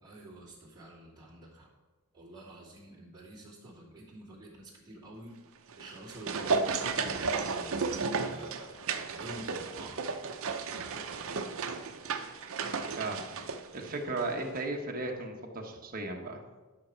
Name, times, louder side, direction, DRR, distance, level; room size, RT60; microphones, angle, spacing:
voice 1, 0.0-1.7 2.1-5.3 5.8-8.7 9.2-10.0, right 1 dB, 20° right, -6 dB, 2.9 m, -48 dB
sound 1, 5.7-14.3 14.6-14.7, right 4 dB, 65° right, 0.7 m, -34 dB
voice 2, 13.0-16.4, right 2 dB, 40° right, 1 dB, 1.3 m, -36 dB
11.5 x 6.3 x 4.5 m, 1.3 s
head